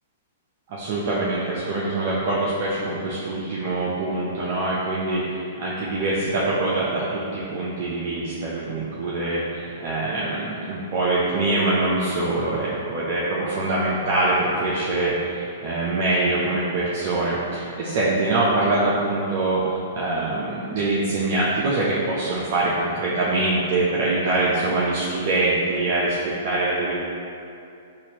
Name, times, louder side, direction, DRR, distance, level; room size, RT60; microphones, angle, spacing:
voice 1, 0.7-26.9, right 2 dB, 50° right, -7 dB, 0.5 m, -24 dB
4.1 x 2.5 x 2.8 m, 2.6 s
hypercardioid pair, 120°, 0 cm